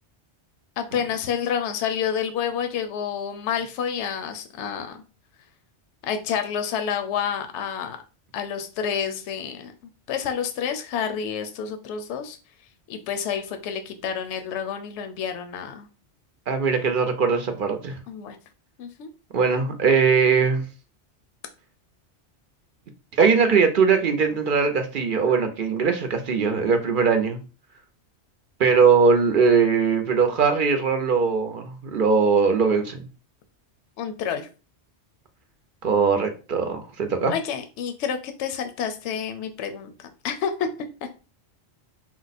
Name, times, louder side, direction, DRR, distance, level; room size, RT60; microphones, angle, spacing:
voice 1, 0.8-5.0 6.0-8.0 8.3-9.7 10.1-12.4 12.9-15.9 18.1-18.4 18.8-19.1 34.0-34.5 37.3-40.7, left 7 dB, 80° left, 7 dB, 0.9 m, -29 dB
voice 2, 16.5-18.0 19.3-20.6 23.2-27.4 28.6-33.0 35.8-37.3, right 5 dB, 55° right, 6 dB, 0.6 m, -20 dB
4.5 x 2.1 x 4.0 m, 0.34 s
omnidirectional pair, 1.2 m